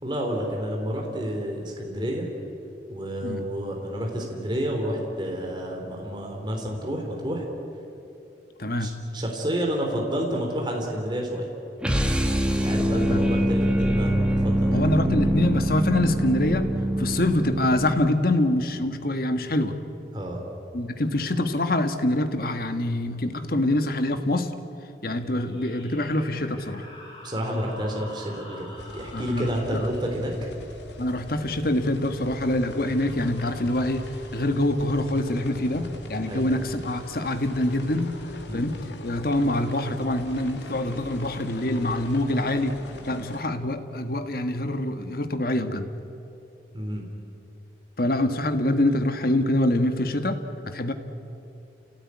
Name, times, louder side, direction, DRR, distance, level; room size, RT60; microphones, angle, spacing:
voice 1, 0.0-2.3 2.9-7.4 8.8-11.5 12.5-14.9 20.1-20.4 27.2-30.3 36.3-36.5 38.5-38.7 46.7-47.1, equal, 25° right, 0 dB, 3.5 m, -30 dB
voice 2, 8.6-8.9 12.6-13.2 14.7-16.7 17.0-19.8 20.7-24.6 25.0-26.8 29.1-29.9 31.0-38.2 38.5-45.9 48.0-50.9, left 1 dB, 55° left, 8 dB, 1.6 m, -25 dB
sound 1, 11.8-18.3, equal, 5° right, 1.8 m, -24 dB
sound 2, 25.3-32.6, left 1 dB, 30° left, 6.0 m, -46 dB
sound 3, 28.7-43.4, left 1 dB, 90° left, 2.6 m, -41 dB
29.0 x 17.5 x 9.7 m, 2.8 s
head